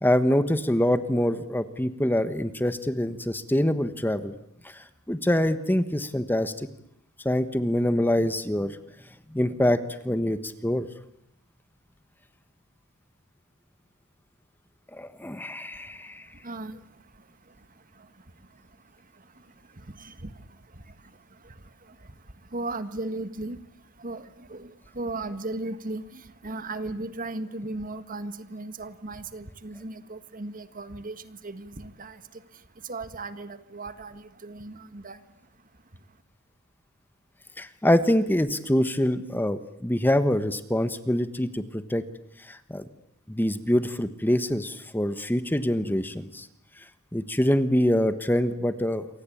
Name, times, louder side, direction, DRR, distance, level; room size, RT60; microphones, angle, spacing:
voice 1, 0.0-4.3 4.7-6.7 7.2-8.8 9.3-9.8 10.0-10.9 14.9-16.3 37.6-42.0 42.5-42.9 43.3-46.5 47.1-49.1, left 1 dB, 10° left, 11 dB, 1.3 m, -25 dB
voice 2, 16.4-16.8 20.0-20.3 22.5-23.6 24.0-24.7 24.9-32.2 32.9-35.2, right 2 dB, 40° right, 11 dB, 1.7 m, -36 dB
28.0 x 24.5 x 8.6 m, 0.75 s
head